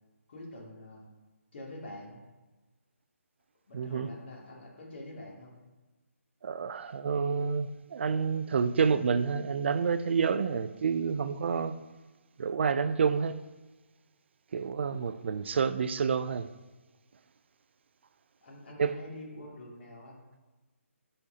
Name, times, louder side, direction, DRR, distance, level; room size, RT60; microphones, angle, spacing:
voice 1, 0.3-1.1 1.5-2.2 3.7-5.6 15.1-15.4 18.4-20.2, left 1 dB, 50° left, 2.3 m, -46 dB
voice 2, 3.7-4.1 6.4-11.8 12.4-13.4 14.5-16.5 18.8-18.9, right 6 dB, 50° right, 0.4 m, -29 dB
10.5 x 4.3 x 2.7 m
figure-of-eight pair, 155°, 8 cm